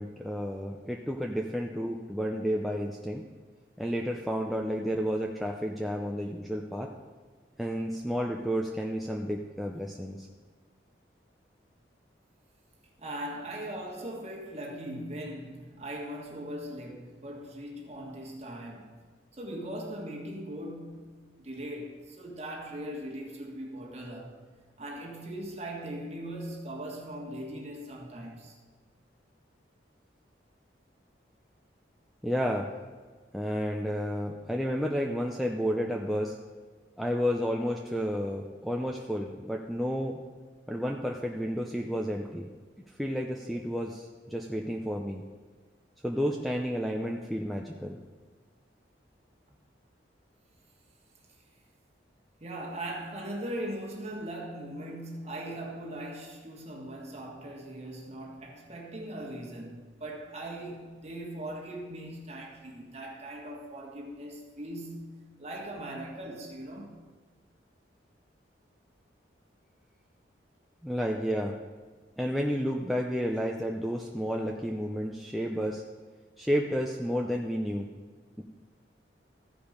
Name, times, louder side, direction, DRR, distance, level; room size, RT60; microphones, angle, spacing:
voice 1, 0.0-3.2 3.8-6.9 7.6-10.3 32.2-32.7 33.3-36.4 37.0-40.2 40.7-42.5 43.0-45.2 46.0-48.0 70.8-71.6 72.2-75.8 76.4-77.9 78.4-78.5, equal, ahead, 0.5 m, -31 dB
voice 2, 13.0-19.0 19.4-24.4 24.8-28.6 52.4-67.0, right 1 dB, 35° right, 1.7 m, -40 dB
15.0 x 5.0 x 5.1 m
head